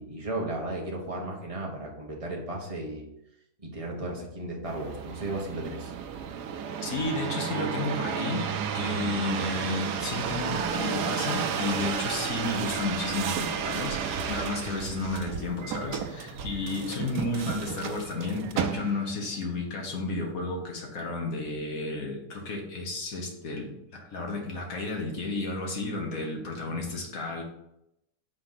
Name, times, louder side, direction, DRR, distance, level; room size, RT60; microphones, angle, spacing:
voice 1, 0.0-3.1 3.6-5.9, right 1 dB, 25° right, -1 dB, 1.2 m, -35 dB
sound 1, 4.7-19.2 19.8-20.3, right 7 dB, 85° right, 1.2 m, -32 dB
voice 2, 6.8-8.5 8.7-27.4, left 3 dB, 60° left, 1 dB, 1.7 m, -32 dB
5.2 x 4.1 x 5.7 m, 0.83 s
omnidirectional pair, 1.7 m